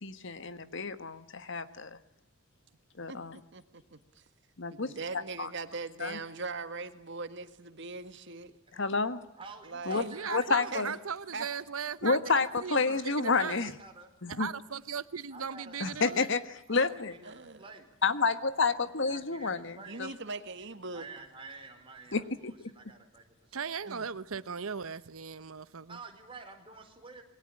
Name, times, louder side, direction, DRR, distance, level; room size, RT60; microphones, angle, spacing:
voice 1, 0.0-2.0 3.0-3.4 4.6-5.5 6.0-6.2 8.8-9.2 9.9-10.9 12.0-13.7 14.2-14.5 15.8-16.4 16.7-17.1 18.0-20.1 22.1-22.5, left 4 dB, 60° left, 12 dB, 1.5 m, -30 dB
voice 2, 3.5-4.2 4.7-8.5 9.6-10.2 10.7-10.8 11.3-11.5 17.2-17.6 19.9-21.1 23.8-24.1, right 3 dB, 60° right, 9 dB, 1.8 m, -40 dB
voice 3, 9.4-11.0 12.2-14.1 15.3-16.3 16.7-17.9 19.0-20.0 20.9-23.7 25.9-27.2, right 4 dB, 25° right, 4 dB, 4.4 m, -50 dB
voice 4, 10.1-13.7 14.3-16.3 23.5-26.0, right 6 dB, 85° right, 15 dB, 0.9 m, -38 dB
27.0 x 22.0 x 8.7 m, 0.82 s
head